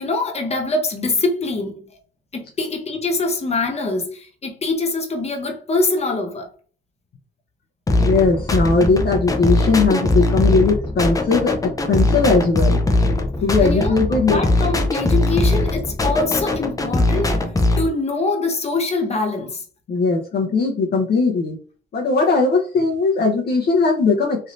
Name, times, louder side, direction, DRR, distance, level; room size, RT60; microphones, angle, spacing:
voice 1, 0.0-1.8 2.3-6.5 13.6-17.4 17.8-19.6, left 3 dB, 30° left, 1.0 m, -24 dB
sound 1, 7.9-17.9, left 2 dB, 15° left, 0.6 m, -20 dB
voice 2, 8.0-12.8 13.4-14.4 19.9-21.6 21.9-24.5, left 4 dB, 55° left, 0.7 m, -19 dB
3.2 x 2.7 x 2.5 m
cardioid pair, 90°, 20 cm